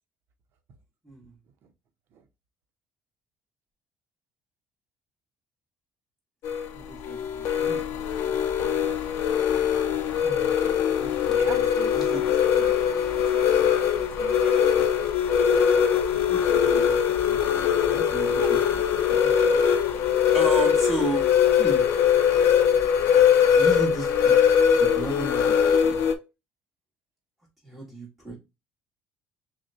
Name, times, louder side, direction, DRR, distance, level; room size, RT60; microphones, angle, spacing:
sound 1, 6.4-26.1, left 8 dB, 65° left, 0.5 m, -22 dB
voice 1, 6.7-8.3 8.7-8.8 10.2-10.5 11.0-11.6 11.9-12.2 12.5-12.6 16.1-17.5 17.8-18.6 19.1-19.3 20.3-21.3 21.6-21.8 23.5-24.6 24.9-25.5 25.8-26.0 27.6-28.4, right 2 dB, ahead, 1.6 m, -34 dB
voice 2, 11.3-14.6 18.4-18.5, right 8 dB, 55° right, 0.8 m, -41 dB
6.0 x 2.2 x 2.7 m
cardioid pair, 165°, 5 cm